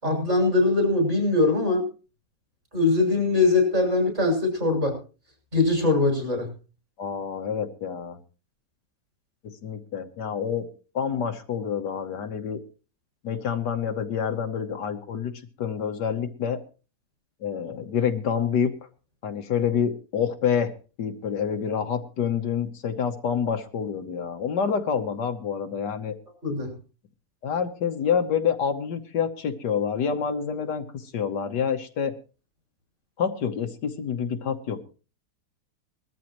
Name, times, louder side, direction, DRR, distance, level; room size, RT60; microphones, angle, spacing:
voice 1, 0.0-1.8 2.7-5.0 5.5-6.5 26.4-26.7, left 3 dB, 35° right, 1 dB, 6.7 m, -22 dB
voice 2, 7.0-8.2 9.4-10.7 10.9-12.6 13.2-15.3 15.6-16.6 17.4-18.7 19.2-20.7 21.0-26.1 27.4-32.1 33.2-34.8, left 7 dB, 70° left, 7 dB, 1.6 m, -27 dB
21.0 x 13.5 x 3.1 m, 0.35 s
omnidirectional pair, 1.9 m